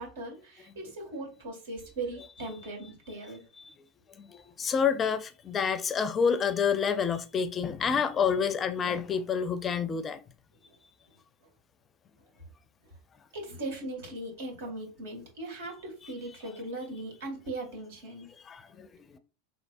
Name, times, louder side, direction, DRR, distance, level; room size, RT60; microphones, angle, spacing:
voice 1, 0.0-3.4 13.3-18.3, right 2 dB, 75° right, 2.0 m, -39 dB
voice 2, 4.2-10.2 18.5-19.2, left 6 dB, 30° left, 0.4 m, -28 dB
3.9 x 3.3 x 2.6 m
hypercardioid pair, 95°, 0 cm